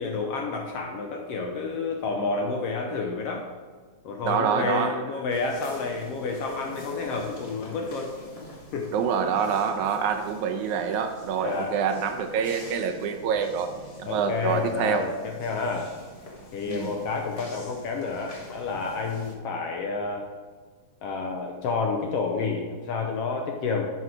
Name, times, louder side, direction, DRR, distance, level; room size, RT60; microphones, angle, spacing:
voice 1, 0.0-3.5 4.0-8.1 8.7-9.0 11.4-11.8 14.0-15.9 16.5-20.2 21.0-23.9, left 4 dB, 70° left, 2 dB, 1.5 m, -29 dB
voice 2, 4.3-5.0 8.9-13.7 14.0-15.0 16.7-16.9, right 7 dB, 80° right, 5 dB, 2.2 m, -26 dB
sound 1, 5.3-19.3, left 1 dB, 40° left, 0.8 m, -46 dB
11.0 x 5.5 x 5.0 m, 1.5 s
omnidirectional pair, 3.5 m